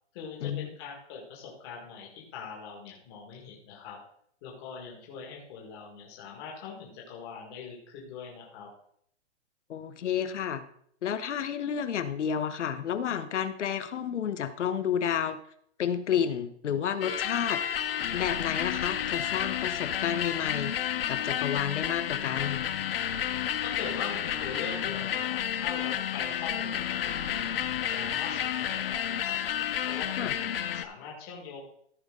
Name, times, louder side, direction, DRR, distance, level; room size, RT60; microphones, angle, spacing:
voice 1, 0.1-4.0 4.4-8.7 23.6-29.4 29.8-31.6, left 6 dB, 20° left, -2 dB, 1.8 m, -42 dB
voice 2, 9.7-10.7 11.0-15.4 15.8-17.6 18.1-20.7 21.1-22.7 30.2-30.3, left 8 dB, 80° left, 12 dB, 1.1 m, -30 dB
sound 1, 17.0-30.9, left 10 dB, 55° left, 0.6 m, -31 dB
14.5 x 5.6 x 3.8 m, 0.67 s
hypercardioid pair, 175°, 35 cm